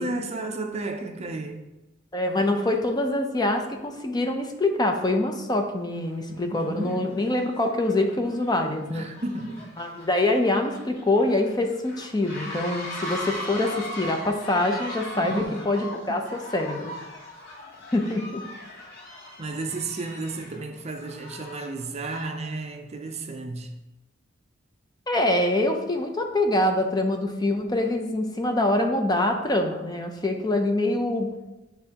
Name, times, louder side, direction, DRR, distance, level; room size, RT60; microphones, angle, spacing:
voice 1, 0.0-1.6 6.3-7.1 8.9-9.6 15.2-15.6 19.4-23.7, right 2 dB, 35° right, 0.5 m, -33 dB
voice 2, 2.1-9.0 9.8-16.9 17.9-18.4 25.1-31.3, left 1 dB, 20° left, 0.6 m, -25 dB
sound 1, 5.9-6.2 6.5-22.5, left 1 dB, 50° left, 2.2 m, -39 dB
9.8 x 3.5 x 2.9 m
head